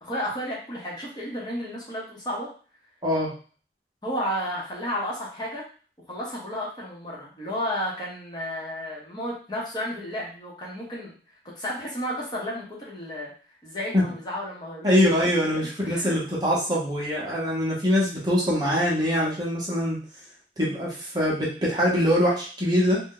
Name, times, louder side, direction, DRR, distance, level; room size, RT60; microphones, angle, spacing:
voice 1, 0.0-2.5 4.0-5.6 6.1-11.2 11.5-13.3 13.6-15.1 15.8-16.2, equal, 25° left, -4 dB, 0.8 m, -32 dB
voice 2, 14.8-20.0 20.6-23.0, equal, 20° right, -5 dB, 0.8 m, -23 dB
2.6 x 2.1 x 3.7 m, 0.39 s
head